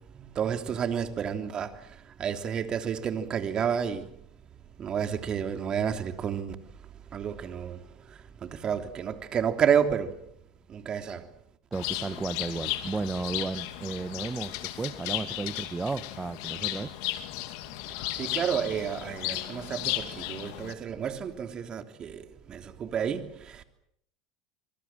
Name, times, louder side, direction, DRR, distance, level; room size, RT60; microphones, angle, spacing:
voice 1, 0.3-1.7 2.2-4.1 4.8-6.5 7.1-7.8 8.4-10.1 10.7-11.2 18.1-23.6, right 8 dB, 40° right, 3.2 m, -30 dB
Bird, 11.7-20.7, left 15 dB, 70° left, 2.6 m, -35 dB
voice 2, 11.7-16.9, right 4 dB, 20° right, 1.1 m, -33 dB
26.0 x 23.5 x 7.6 m
hypercardioid pair, 90°, 2 cm